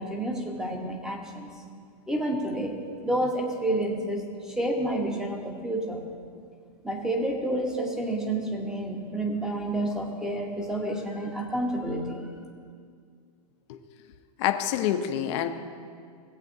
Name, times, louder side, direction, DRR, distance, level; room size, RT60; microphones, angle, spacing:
voice 1, 0.0-1.5 2.1-2.8 3.0-6.0 6.8-12.3, right 1 dB, 5° right, 1 dB, 1.1 m, -29 dB
voice 2, 14.4-15.5, left 11 dB, 45° left, 6 dB, 0.7 m, -26 dB
17.5 x 8.1 x 2.7 m, 2.1 s
hypercardioid pair, 145°, 21 cm